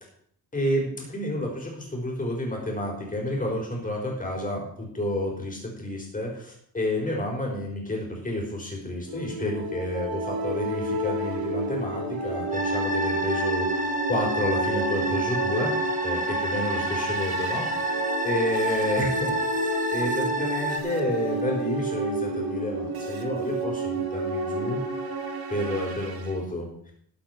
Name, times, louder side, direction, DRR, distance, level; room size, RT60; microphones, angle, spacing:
voice 1, 0.5-13.6 14.1-17.7 18.2-19.4 19.9-24.8 25.5-26.7, left 1 dB, 20° left, -1 dB, 4.5 m, -30 dB
sound 1, 9.1-26.3, right 2 dB, 75° right, 1.8 m, -30 dB
sound 2, 12.5-20.8, right 1 dB, 20° right, 1.2 m, -29 dB
14.0 x 8.3 x 4.6 m, 0.64 s
wide cardioid pair, 135°, 36 cm